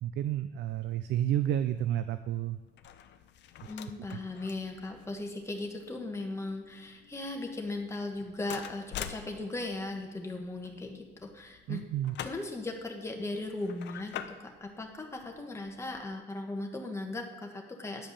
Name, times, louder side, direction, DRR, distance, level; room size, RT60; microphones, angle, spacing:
voice 1, 0.0-2.6 4.1-4.2 11.7-12.2, right 11 dB, 65° right, 12 dB, 0.4 m, -31 dB
sound 1, 0.7-16.1, left 10 dB, 70° left, 0.7 m, -48 dB
voice 2, 3.7-11.8 12.2-18.1, left 2 dB, 15° left, 2 dB, 1.3 m, -38 dB
9.9 x 5.3 x 7.2 m, 1.2 s
cardioid pair, 130°, 19 cm